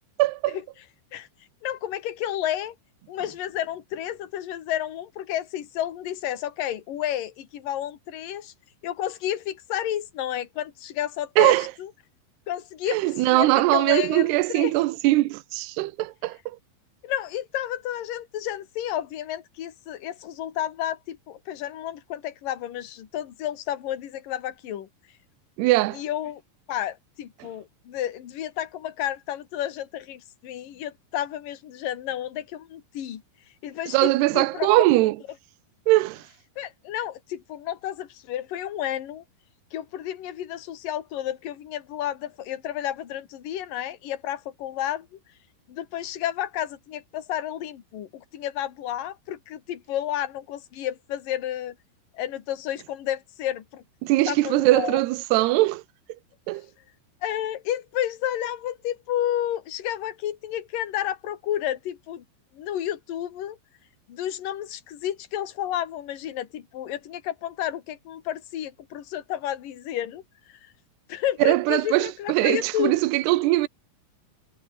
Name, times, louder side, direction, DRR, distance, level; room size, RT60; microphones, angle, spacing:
voice 1, 0.2-0.6 11.4-11.7 12.9-16.4 25.6-26.0 33.9-35.2 35.9-36.2 54.0-55.8 56.5-56.6 71.4-73.7, right 18 dB, 85° right, 2.3 m, -21 dB
voice 2, 1.6-2.7 3.1-8.5 8.8-11.9 12.5-14.7 17.0-24.9 25.9-26.4 26.7-33.2 33.6-34.8 36.6-39.2 39.7-45.1 45.7-51.7 52.1-53.8 54.3-55.0 57.2-62.2 62.5-63.6 64.1-70.2 71.1-72.9, left 11 dB, 50° left, 3.4 m, -31 dB
omnidirectional pair, 6.0 m